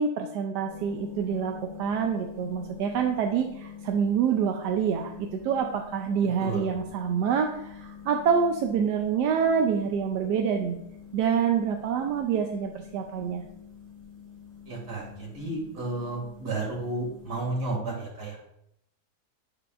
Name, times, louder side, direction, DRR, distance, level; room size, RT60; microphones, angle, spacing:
voice 1, 0.0-10.8 11.1-13.4, right 7 dB, 90° right, 3 dB, 1.2 m, -26 dB
sound 1, 0.6-17.5, left 7 dB, 40° right, 3.1 m, -45 dB
voice 2, 14.7-18.4, right 2 dB, 75° right, -3 dB, 2.8 m, -32 dB
8.4 x 6.8 x 2.5 m, 0.77 s
omnidirectional pair, 1.8 m